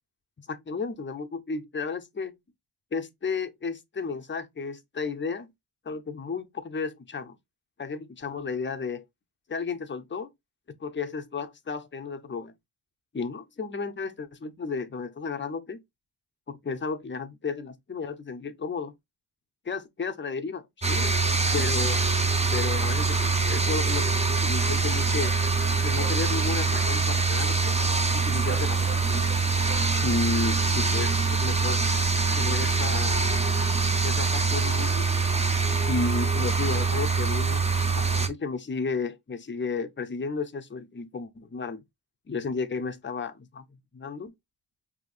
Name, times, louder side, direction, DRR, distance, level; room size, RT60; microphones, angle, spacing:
voice 1, 0.4-2.4 2.9-5.5 5.8-7.4 7.8-9.0 9.5-10.3 10.7-12.5 13.1-15.8 16.5-18.9 19.6-21.2 21.5-22.0 22.5-25.4 25.8-27.8 28.1-29.4 30.0-31.8 32.4-33.2 34.0-35.1 35.9-37.7 37.9-41.8 42.3-44.3, left 4 dB, 25° left, 0.6 m, -33 dB
sound 1, 20.8-38.3, right 4 dB, 15° right, 0.6 m, -24 dB
sound 2, 25.0-30.7, right 4 dB, 55° right, 2.1 m, -43 dB
5.1 x 2.8 x 2.4 m
wide cardioid pair, 110°, 45 cm